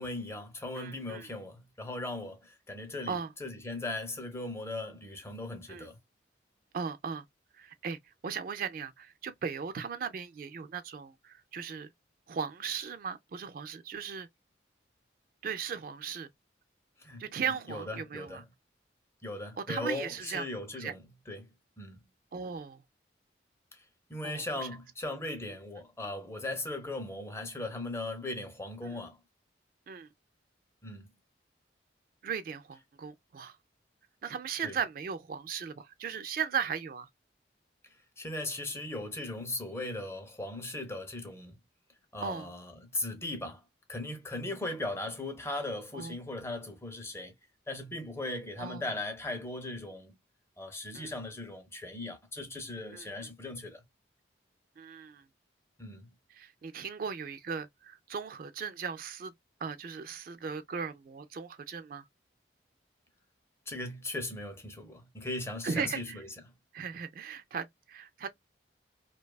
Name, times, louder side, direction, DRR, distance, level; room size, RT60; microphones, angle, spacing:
voice 1, 0.0-6.0 17.0-17.2 17.7-18.4 19.2-21.5 21.8-22.0 23.7-23.8 24.1-29.2 30.8-31.1 34.6-34.8 38.2-41.6 42.1-43.6 43.9-47.3 47.7-50.2 50.6-53.8 55.8-56.1 63.7-66.3, left 2 dB, 15° left, 0.5 m, -38 dB
voice 2, 0.7-1.3 3.1-3.3 5.7-5.9 6.7-7.3 7.5-11.9 12.3-14.3 15.4-16.3 17.2-18.4 19.6-20.4 20.8-20.9 22.3-22.8 24.2-24.7 28.8-29.0 29.9-30.1 32.2-33.6 34.2-37.1 42.2-42.5 45.9-46.1 48.6-48.8 50.9-51.1 52.9-53.3 54.8-55.2 56.3-59.3 59.6-62.0 65.6-66.2 66.7-68.3, right 6 dB, 50° right, 0.3 m, -37 dB
2.6 x 2.2 x 2.2 m
head